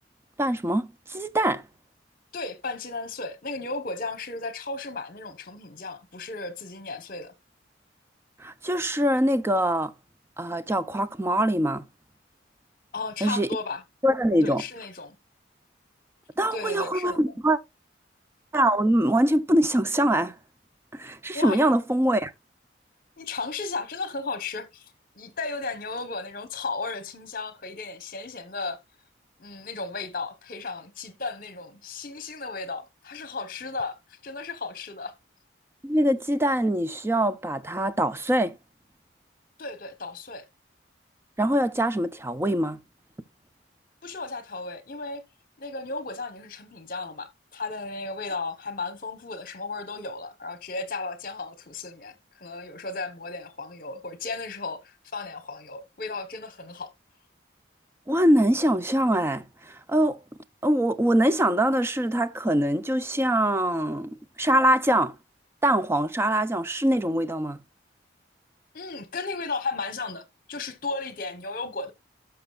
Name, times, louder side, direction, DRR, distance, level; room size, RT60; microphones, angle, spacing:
voice 1, 0.4-1.6 8.4-9.9 10.4-11.8 13.2-13.5 14.0-14.6 16.4-17.6 18.5-20.3 20.9-22.3 35.8-38.5 41.4-42.8 58.1-60.2 60.6-64.1 64.4-65.1 65.6-67.6, right 1 dB, 15° right, 0.4 m, -23 dB
voice 2, 2.3-7.3 12.9-13.8 14.4-15.2 16.5-17.2 21.3-21.7 23.2-28.8 29.4-35.1 39.6-40.5 44.0-45.2 45.6-56.9 68.7-71.9, left 3 dB, 45° left, 1.1 m, -35 dB
12.0 x 5.8 x 2.4 m
head